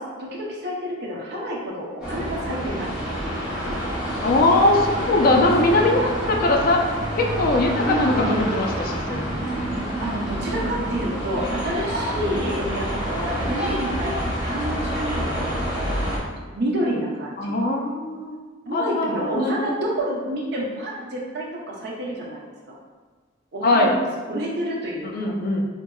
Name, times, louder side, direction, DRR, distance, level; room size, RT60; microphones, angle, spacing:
voice 1, 0.0-2.9 7.9-8.5 10.0-16.3 16.5-17.6 18.7-22.4 22.7-22.8 23.5-25.3, equal, 60° right, -3 dB, 0.7 m, -29 dB
sound 1, 2.0-16.2, equal, 5° right, 1.0 m, -27 dB
voice 2, 4.2-6.8 7.2-9.3 17.4-18.4 18.7-19.7 23.6-24.0 25.0-25.7, left 2 dB, 50° left, 1 dB, 0.4 m, -21 dB
4.4 x 2.6 x 2.3 m, 1.4 s
head